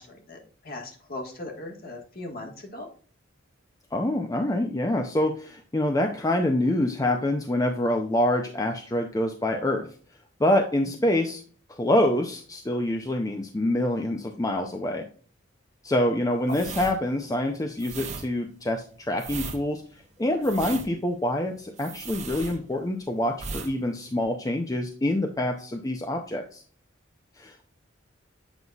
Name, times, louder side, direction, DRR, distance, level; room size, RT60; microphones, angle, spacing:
voice 1, 0.0-2.9 10.9-11.0 16.5-16.6, left 2 dB, 50° left, 1 dB, 1.4 m, -39 dB
voice 2, 3.9-9.9 10.4-11.4 11.8-15.0 15.8-19.8 20.2-26.6 27.4-27.6, left 1 dB, 20° left, 4 dB, 0.5 m, -26 dB
sound 1, 16.4-23.0 23.3-23.7 24.0-24.2, right 4 dB, 35° right, 0.8 m, -37 dB
8.0 x 5.4 x 2.3 m, 0.43 s
head